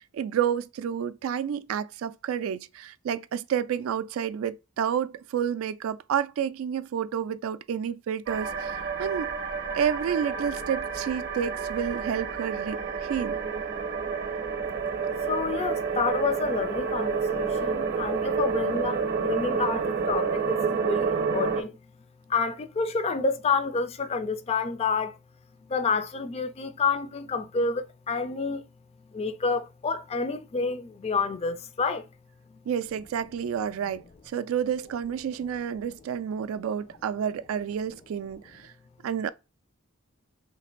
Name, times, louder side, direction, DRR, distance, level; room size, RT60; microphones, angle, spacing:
voice 1, 0.0-9.3 9.7-13.4 32.7-38.7 39.0-39.3, right 8 dB, 70° right, 0.3 m, -30 dB
sound 1, 8.3-21.6, right 5 dB, 45° right, 0.7 m, -29 dB
voice 2, 15.3-21.8 22.3-25.2 25.6-28.6 29.1-32.1 32.5-32.6, left 4 dB, 30° left, 0.4 m, -29 dB
3.2 x 2.5 x 4.3 m
head